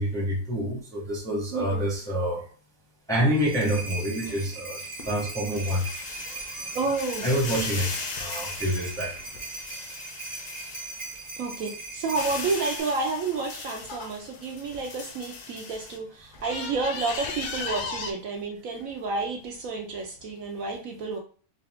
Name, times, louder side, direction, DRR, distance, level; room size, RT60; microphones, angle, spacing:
voice 1, 0.0-2.5 3.1-4.8 5.0-5.9 7.2-7.9 8.2-9.1, equal, 5° left, -2 dB, 0.6 m, -27 dB
voice 2, 1.5-1.9 6.7-7.3 11.4-21.2, right 3 dB, 70° right, 3 dB, 0.9 m, -30 dB
sound 1, 3.1-12.8, right 3 dB, 40° right, 0.6 m, -39 dB
sound 2, 4.3-11.2 11.6-16.0 16.3-18.1, left 4 dB, 75° left, 1.2 m, -38 dB
4.0 x 2.3 x 3.4 m, 0.42 s
omnidirectional pair, 1.7 m